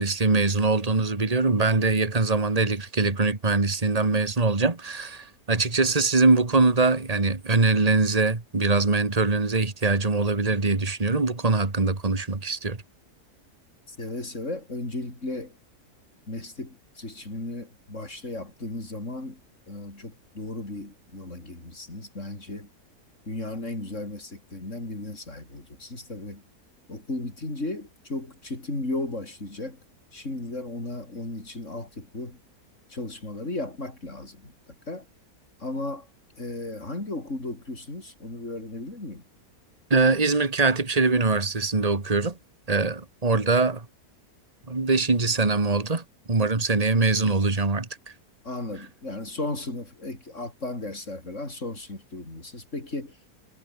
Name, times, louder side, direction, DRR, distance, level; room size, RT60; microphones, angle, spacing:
voice 1, 0.0-12.8 39.9-42.4 42.7-43.8 44.7-47.9, right 3 dB, 25° right, 2.2 m, -23 dB
voice 2, 13.9-15.6 16.3-19.4 19.7-22.7 23.3-26.4 26.9-29.8 30.1-32.4 32.9-35.1 35.6-36.1 36.4-39.2 48.4-53.2, left 2 dB, 50° left, 6.2 m, -35 dB
omnidirectional pair, 1.6 m